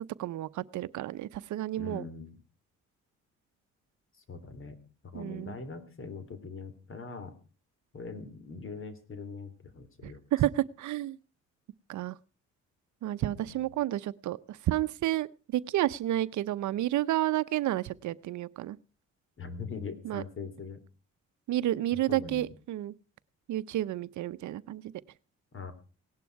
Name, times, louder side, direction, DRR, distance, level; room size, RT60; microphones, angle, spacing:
voice 1, 0.2-2.0 5.1-5.5 10.0-11.2 11.9-12.2 13.0-15.3 15.5-18.8 20.0-20.2 21.5-22.9 23.5-24.9, right 14 dB, 75° right, 15 dB, 0.7 m, -31 dB
voice 2, 1.8-2.3 4.3-7.3 7.9-10.2 13.2-13.6 19.4-20.8 22.1-22.5 25.5-25.7, left 4 dB, 45° left, 12 dB, 3.3 m, -42 dB
18.0 x 11.5 x 4.7 m, 0.36 s
cardioid pair, 90°, 30 cm